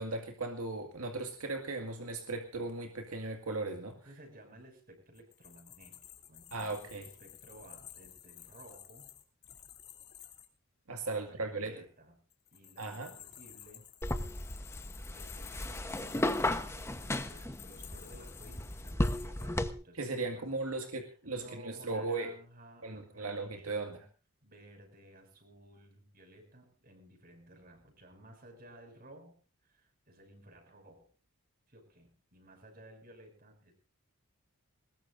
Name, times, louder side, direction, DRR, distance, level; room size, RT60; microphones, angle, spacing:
voice 1, 0.0-4.0 6.5-7.1 10.9-11.7 12.8-13.1 19.9-22.3 22.8-24.0, right 3 dB, 80° right, 4 dB, 2.1 m, -37 dB
voice 2, 4.1-6.0 6.3-9.2 11.1-12.2 12.5-13.9 15.1-24.0 24.4-29.3 29.6-31.1 31.7-33.7, right 1 dB, 40° right, 4 dB, 6.2 m, -56 dB
sound 1, 5.1-10.5 12.3-19.5, left 10 dB, 50° left, 3.0 m, -53 dB
sound 2, 14.0-19.7, left 1 dB, 10° left, 1.0 m, -34 dB
22.0 x 20.5 x 2.6 m, 0.38 s
head